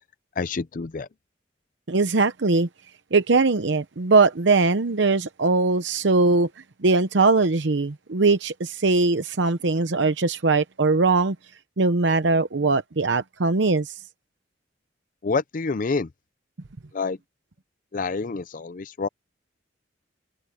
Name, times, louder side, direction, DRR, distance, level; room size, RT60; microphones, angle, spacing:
voice 1, 0.4-1.1 15.2-16.1 16.9-17.2 17.9-19.1, left 4 dB, 45° left, 0.5 m, -27 dB
voice 2, 1.9-2.7 3.1-6.5 6.8-11.4 11.8-13.9, right 3 dB, 75° right, 0.8 m, -21 dB
head